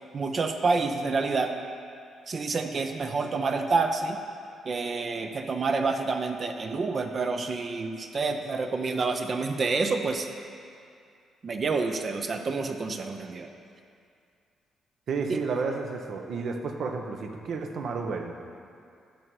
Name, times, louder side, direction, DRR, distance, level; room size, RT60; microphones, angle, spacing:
voice 1, 0.1-1.6 2.3-4.2 4.6-10.3 11.4-13.5 15.3-15.4, right 4 dB, 45° right, 5 dB, 0.6 m, -28 dB
voice 2, 15.1-18.4, right 4 dB, 60° right, 4 dB, 0.9 m, -31 dB
12.0 x 5.4 x 4.8 m, 2.4 s
cardioid pair, 90°, 0 cm